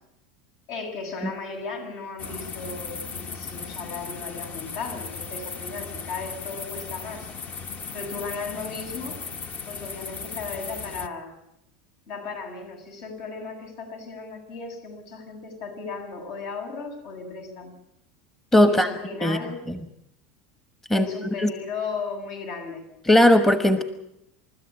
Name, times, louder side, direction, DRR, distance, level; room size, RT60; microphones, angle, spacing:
voice 1, 0.7-7.3 7.9-9.2 9.7-11.3 12.1-17.7 18.7-19.6 20.9-22.8, left 4 dB, 65° left, 4 dB, 7.5 m, -36 dB
sound 1, 2.2-11.1, left 5 dB, 35° left, 1.3 m, -36 dB
voice 2, 18.5-18.9 19.2-19.4 19.7-19.8 20.9-21.1 21.4-21.5 23.0-23.8, left 1 dB, 5° left, 8 dB, 1.2 m, -17 dB
29.0 x 13.5 x 8.7 m, 0.83 s
supercardioid pair, 135°, 5 cm